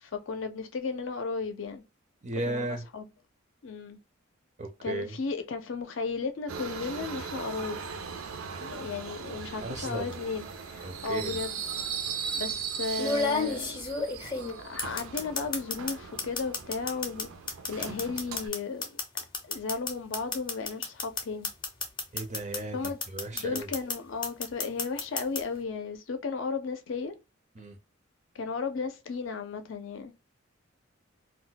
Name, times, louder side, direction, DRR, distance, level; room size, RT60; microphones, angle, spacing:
voice 1, 0.0-1.8 2.5-3.0 3.6-4.0 4.8-7.8 8.6-11.6 12.4-13.8 14.6-17.3 17.7-21.5 22.7-23.0 23.3-27.1 28.3-30.1, left 4 dB, 65° left, 0.5 m, -34 dB
voice 2, 2.2-2.9 4.6-5.2 9.6-10.2 10.8-11.4 22.1-23.7 27.6-27.8, right 2 dB, 35° right, 0.4 m, -35 dB
Subway metro underground, 6.5-18.5, right 6 dB, 85° right, 0.5 m, -38 dB
sound 1, 9.8-10.1 11.3-11.4 13.0-15.9 16.2-22.6 22.8-23.9 24.2-25.4, left 4 dB, 25° left, 0.6 m, -31 dB
2.3 x 2.1 x 3.9 m
head